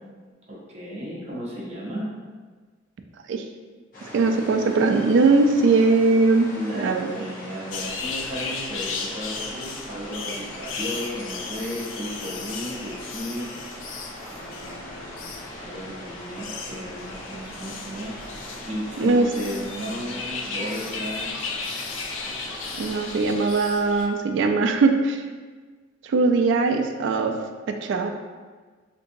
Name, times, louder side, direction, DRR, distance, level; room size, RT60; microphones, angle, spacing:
voice 1, 0.5-2.1 6.5-13.5 14.3-18.2 18.7-21.5, equal, 35° right, -6 dB, 0.7 m, -34 dB
sound 1, 3.9-23.2, equal, 45° left, 0.8 m, -40 dB
voice 2, 4.1-6.5 6.8-7.1 19.0-19.3 22.8-25.2 26.0-27.3 27.8-28.1, right 3 dB, 65° right, 5 dB, 0.3 m, -20 dB
sound 2, 7.7-24.1, left 4 dB, 70° left, 0.3 m, -36 dB
3.8 x 2.6 x 2.6 m, 1.4 s
head